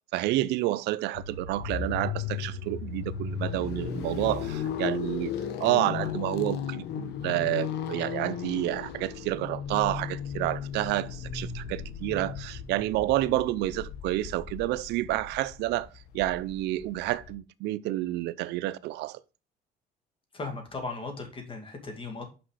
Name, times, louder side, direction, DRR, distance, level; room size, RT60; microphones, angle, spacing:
voice 1, 0.1-5.3 5.6-15.9 16.1-19.2, right 16 dB, 85° right, 0.5 m, -29 dB
sound 1, 1.1-17.3, left 8 dB, 80° left, 1.1 m, -35 dB
voice 2, 20.3-22.3, left 3 dB, 30° left, 2.2 m, -37 dB
6.0 x 5.5 x 4.9 m
cardioid pair, 110°, 17 cm